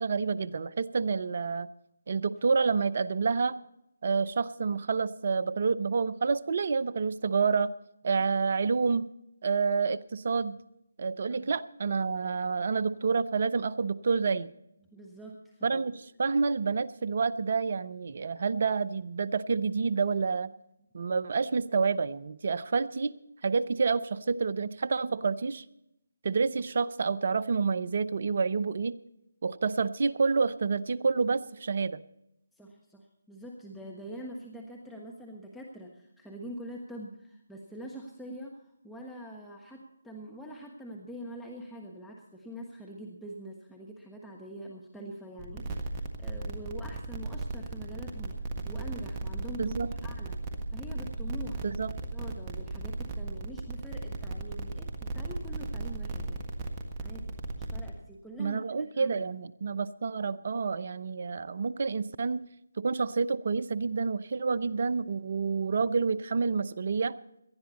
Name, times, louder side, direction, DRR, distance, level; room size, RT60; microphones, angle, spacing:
voice 1, 0.0-1.7 2.1-3.6 4.0-7.7 8.0-9.1 9.4-10.6 11.0-14.5 15.6-20.5 20.9-23.1 23.4-25.6 26.2-29.0 29.4-32.0 49.6-49.9 51.6-51.9 58.4-62.4 62.8-67.2, right 5 dB, 50° right, 15 dB, 0.7 m, -28 dB
voice 2, 14.9-15.8 32.5-48.4 48.6-50.4 50.7-51.6 52.0-56.5 57.0-59.2, equal, 5° left, -2 dB, 1.2 m, -44 dB
sound 1, 45.4-57.9, right 2 dB, 20° right, 1.5 m, -36 dB
18.5 x 12.5 x 4.2 m, 0.83 s
figure-of-eight pair, 150°, 0 cm